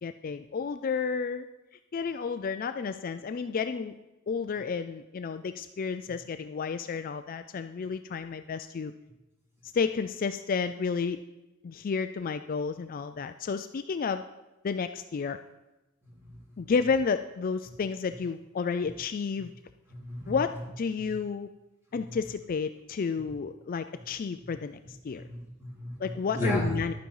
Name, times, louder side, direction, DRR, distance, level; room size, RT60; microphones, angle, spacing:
voice 1, 0.0-1.5 1.9-3.9 4.3-8.9 9.7-11.2 11.6-14.2 14.6-15.4 16.6-19.5 20.3-21.5 21.9-25.2 26.0-26.9, left 5 dB, 40° left, 10 dB, 0.4 m, -31 dB
voice 2, 19.9-20.4 25.1-26.8, equal, 15° right, -3 dB, 3.1 m, -33 dB
12.0 x 9.2 x 4.7 m, 1.0 s
head